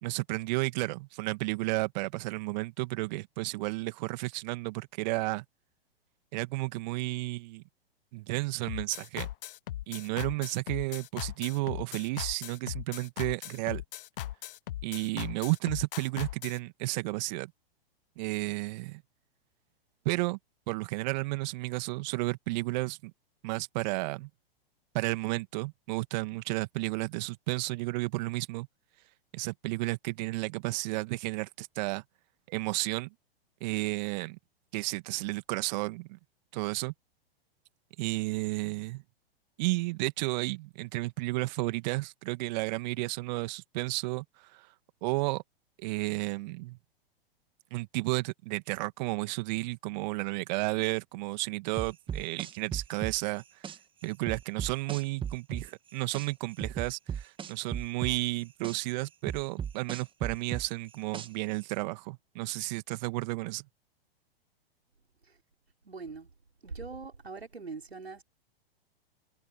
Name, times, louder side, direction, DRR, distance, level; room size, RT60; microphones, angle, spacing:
voice 1, 0.0-5.4 6.3-7.6 8.1-9.3 9.9-13.8 14.8-17.5 18.2-19.0 20.1-20.4 20.7-23.1 23.4-24.3 24.9-28.7 29.3-32.0 32.5-33.1 33.6-34.4 34.7-36.2 36.5-36.9 38.0-39.0 39.6-44.7 45.0-45.4 45.8-46.8 47.7-53.6 54.0-63.6, right 23 dB, 45° right, 1.9 m, -32 dB
sound 1, 8.7-16.6, left 13 dB, 65° left, 0.5 m, -38 dB
sound 2, 51.8-53.8 54.3-56.3 56.6-58.8 59.3-61.5, right 8 dB, 15° right, 1.6 m, -36 dB
voice 2, 65.8-66.3 66.6-68.2, right 4 dB, 90° right, 5.3 m, -42 dB
figure-of-eight pair, 110°, 30 cm